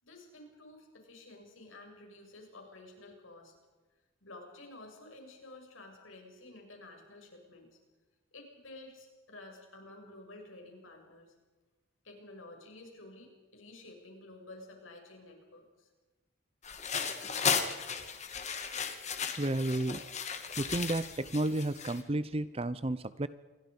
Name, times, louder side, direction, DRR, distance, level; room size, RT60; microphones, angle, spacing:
voice 1, 0.0-3.5 4.2-7.7 8.3-11.3 12.0-15.9, left 2 dB, 80° left, 2 dB, 7.4 m, -51 dB
sound 1, 16.6-22.0, left 6 dB, 35° left, 2.2 m, -35 dB
voice 2, 19.4-20.0 20.6-23.3, right 1 dB, 30° right, 15 dB, 0.6 m, -32 dB
28.0 x 22.5 x 5.4 m, 1.2 s
head